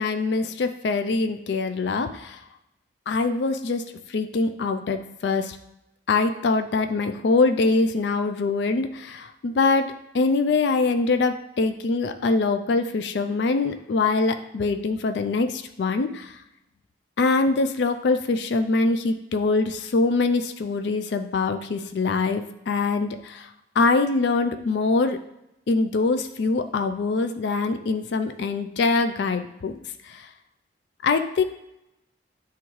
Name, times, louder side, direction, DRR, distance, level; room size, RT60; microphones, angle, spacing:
voice 1, 0.0-2.4 3.1-5.6 6.1-16.4 17.2-25.2 25.7-29.7 30.0-30.3 31.0-31.4, left 3 dB, 65° left, 8 dB, 0.4 m, -24 dB
9.3 x 3.5 x 3.1 m, 0.87 s
head